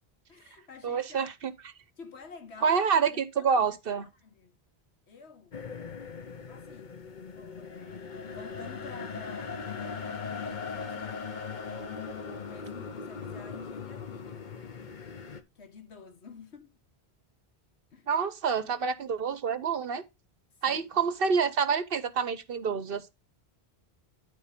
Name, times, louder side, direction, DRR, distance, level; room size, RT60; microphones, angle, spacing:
voice 1, 0.3-1.3 2.0-3.7 4.0-4.5 5.1-5.6 6.5-11.3 11.6-14.4 15.5-16.7 17.9-18.1 20.7-21.0, left 5 dB, 85° left, 1.6 m, -49 dB
voice 2, 0.8-1.5 2.6-4.1 18.1-20.0 20.6-23.1, right 6 dB, 60° right, 1.0 m, -27 dB
sound 1, 5.5-15.4, left 5 dB, 50° left, 1.0 m, -39 dB
11.5 x 3.9 x 5.0 m
omnidirectional pair, 1.1 m